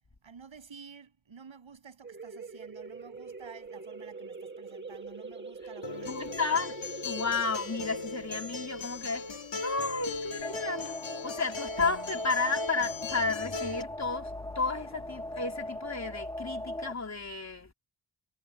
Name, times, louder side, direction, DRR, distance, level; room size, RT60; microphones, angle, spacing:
voice 1, 0.2-6.7, right 6 dB, 85° right, 7.7 m, -51 dB
sound 1, 2.0-11.4, right 4 dB, 25° right, 1.8 m, -44 dB
Acoustic guitar, 5.8-13.8, left 3 dB, 80° left, 3.4 m, -39 dB
voice 2, 6.1-6.8 7.0-9.4 9.6-11.0 11.2-17.7, left 4 dB, 35° left, 3.7 m, -32 dB
sound 2, 10.4-16.9, left 1 dB, 10° left, 0.8 m, -38 dB
wide cardioid pair, 95°, 45 cm